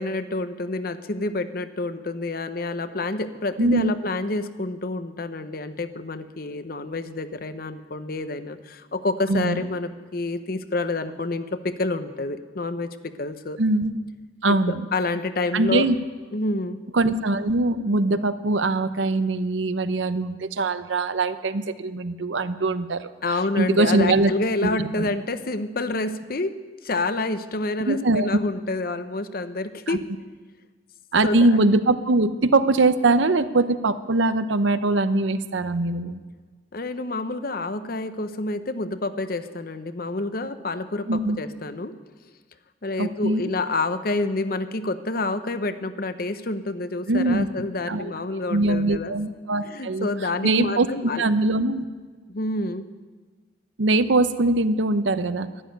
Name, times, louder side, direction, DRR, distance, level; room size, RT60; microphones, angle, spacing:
voice 1, 0.0-13.6 14.7-15.9 16.3-16.8 23.2-26.5 26.8-30.0 31.2-31.6 36.7-41.9 42.8-49.1 49.6-51.2 52.3-52.9, left 2 dB, 50° left, 11 dB, 0.8 m, -28 dB
voice 2, 3.6-3.9 9.3-9.6 13.6-14.0 14.4-14.8 15.5-16.0 16.9-23.1 23.6-24.3 24.6-25.1 27.8-28.3 29.9-30.0 31.1-36.2 41.1-41.4 43.0-43.5 47.1-47.6 47.9-48.1 48.5-50.1 50.4-51.9 53.8-55.5, right 2 dB, 80° right, 12 dB, 0.8 m, -22 dB
12.0 x 11.5 x 9.2 m, 1.4 s
head